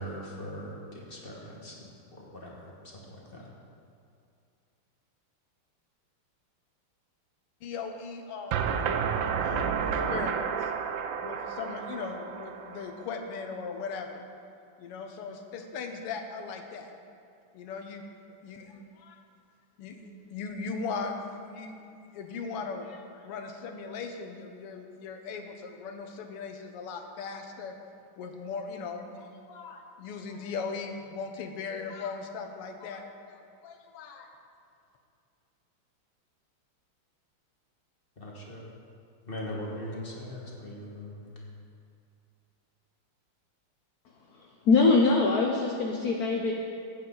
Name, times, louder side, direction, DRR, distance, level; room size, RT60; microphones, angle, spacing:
voice 1, 0.0-1.9 2.2-3.5 38.2-38.7 39.2-41.3, equal, 30° left, -3 dB, 1.5 m, -40 dB
voice 2, 7.6-8.9 9.4-10.7 11.2-14.2 14.8-16.9 17.5-18.0 18.4-19.2 19.8-21.7 22.1-27.8 28.2-34.3, left 5 dB, 90° left, 4 dB, 1.9 m, -38 dB
sound 1, 8.5-13.4, right 7 dB, 75° right, 1.2 m, -31 dB
voice 3, 44.6-46.5, left 3 dB, 60° left, 1 dB, 1.1 m, -22 dB
15.0 x 8.7 x 3.9 m, 2.4 s
omnidirectional pair, 2.4 m